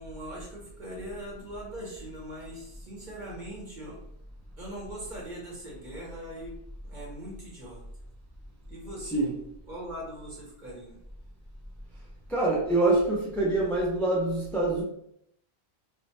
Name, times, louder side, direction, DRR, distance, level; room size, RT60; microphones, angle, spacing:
voice 1, 0.0-4.0 4.6-6.5 6.8-7.8 8.7-9.3 9.7-11.0, right 1 dB, 50° right, -5 dB, 1.3 m, -41 dB
voice 2, 12.3-14.8, right 2 dB, ahead, -5 dB, 0.5 m, -25 dB
2.7 x 2.1 x 3.2 m, 0.73 s
omnidirectional pair, 1.0 m